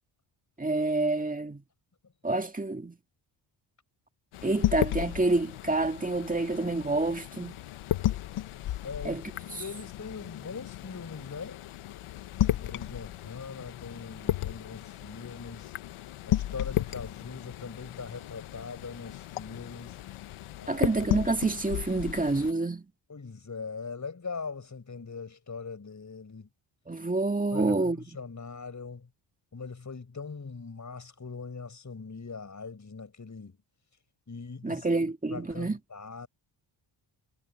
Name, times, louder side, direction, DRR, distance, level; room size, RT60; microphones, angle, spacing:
voice 1, 0.6-1.6 2.2-3.0 4.4-7.6 9.0-9.2 20.7-22.9 26.9-28.0 34.6-35.8, right 2 dB, 15° right, 2.2 m, -28 dB
sound 1, 4.3-22.5, left 13 dB, 80° left, 1.2 m, -34 dB
voice 2, 8.8-9.2 9.6-11.6 12.3-15.7 16.3-20.0 20.6-20.9 23.1-26.5 27.5-29.1 29.5-33.6 34.3-34.9 35.3-36.3, left 4 dB, 35° left, 7.2 m, -41 dB
cardioid pair, 65°, 49 cm